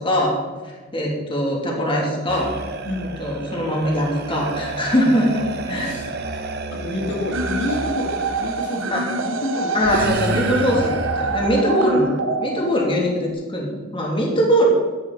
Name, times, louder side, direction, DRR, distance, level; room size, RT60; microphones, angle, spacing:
voice 1, 0.0-2.6 3.0-5.9 8.9-9.0 9.7-14.6, equal, 25° left, -2 dB, 2.9 m, -22 dB
sound 1, 2.3-8.8 9.8-11.4, right 2 dB, 55° right, 1.1 m, -30 dB
voice 2, 5.7-6.1 6.7-10.0, left 1 dB, 60° left, -1 dB, 2.7 m, -29 dB
sound 2, 7.3-13.3, right 3 dB, 75° right, 1.2 m, -25 dB
14.0 x 11.5 x 4.2 m, 1.4 s
head